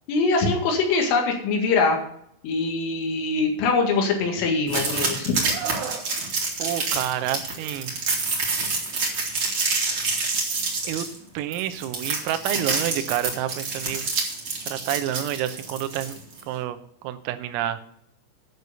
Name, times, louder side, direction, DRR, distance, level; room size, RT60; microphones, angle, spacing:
voice 1, 0.1-2.0 2.4-5.3, left 4 dB, 75° left, 2 dB, 4.4 m, -23 dB
sound 1, 4.7-16.4, right 3 dB, 40° right, 2.0 m, -27 dB
Screaming, 5.5-6.1 7.5-7.8, right 8 dB, 65° right, 3.0 m, -33 dB
voice 2, 6.6-8.0 10.9-11.1 11.4-14.1 14.7-16.2 16.5-16.8 17.0-17.8, right 12 dB, 85° right, 10 dB, 3.5 m, -28 dB
10.5 x 6.8 x 6.8 m, 0.71 s
omnidirectional pair, 6.0 m